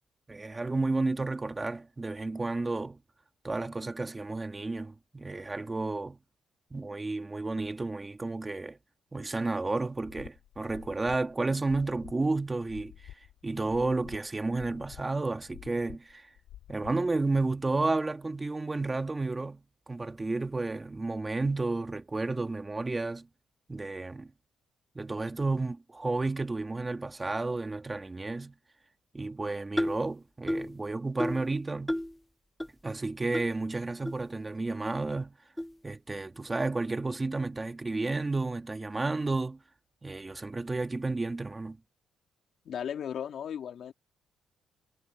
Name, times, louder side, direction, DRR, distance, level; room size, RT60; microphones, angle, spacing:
voice 1, 0.3-3.0 3.4-6.2 6.7-8.8 9.1-12.9 13.4-16.3 16.7-23.3 23.7-24.3 25.0-28.6 29.1-32.0 32.8-35.4 35.8-39.6 40.0-41.8, right 3 dB, 20° right, 2.0 m, -32 dB
sound 1, 10.0-17.5, left 12 dB, 85° left, 4.9 m, -50 dB
sound 2, 29.8-30.1 30.5-30.8 31.2-31.5 31.9-32.2 32.6-32.7 33.3-33.5 34.1-34.2 34.8-34.9 35.6-35.7, equal, 5° left, 0.4 m, -31 dB
voice 2, 42.6-43.9, left 8 dB, 65° left, 2.4 m, -36 dB
cardioid pair, 90°, 0 cm